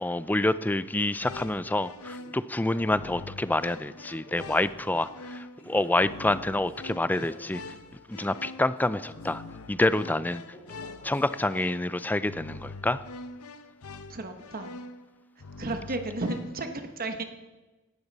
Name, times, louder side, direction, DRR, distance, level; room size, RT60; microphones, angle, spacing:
voice 1, 0.0-5.4 5.7-7.6 8.1-9.4 9.7-10.4 11.0-13.0, left 1 dB, 10° left, 15 dB, 0.4 m, -27 dB
sound 1, 1.0-16.7, left 2 dB, 70° left, 0.8 m, -44 dB
sound 2, 2.1-3.6 4.2-5.0 5.5-6.7 7.2-7.9 8.8-9.6 10.5-11.6, equal, 30° left, 5.0 m, -51 dB
voice 2, 14.1-14.7 15.6-17.2, right 2 dB, 40° right, 6 dB, 1.1 m, -33 dB
17.0 x 12.5 x 4.1 m, 1.2 s
head